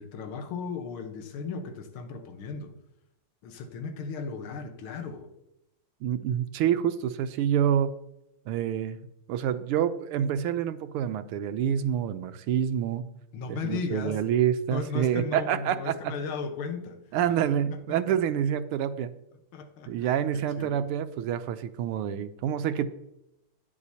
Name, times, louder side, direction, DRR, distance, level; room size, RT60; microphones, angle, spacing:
voice 1, 0.0-2.7 3.4-5.3 13.3-14.2 14.7-17.0 17.7-18.0 19.5-20.9, left 5 dB, 75° left, 6 dB, 1.9 m, -36 dB
voice 2, 6.0-7.9 8.5-9.0 9.3-13.0 13.5-15.9 17.1-19.1 19.9-22.9, right 9 dB, 90° right, 11 dB, 1.6 m, -27 dB
12.5 x 9.6 x 2.8 m, 0.87 s
omnidirectional pair, 2.4 m